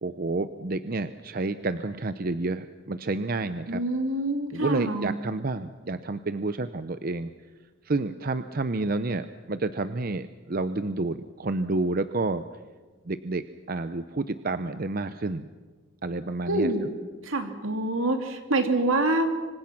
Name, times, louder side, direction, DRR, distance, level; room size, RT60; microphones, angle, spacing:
voice 1, 0.0-3.8 4.5-7.3 7.8-12.4 13.1-13.4 13.7-15.5 16.0-16.7, right 2 dB, 45° right, 11 dB, 0.7 m, -29 dB
voice 2, 3.7-5.1 16.5-16.9 17.2-19.3, right 2 dB, 80° right, 5 dB, 2.9 m, -26 dB
26.0 x 25.5 x 6.0 m, 1.4 s
head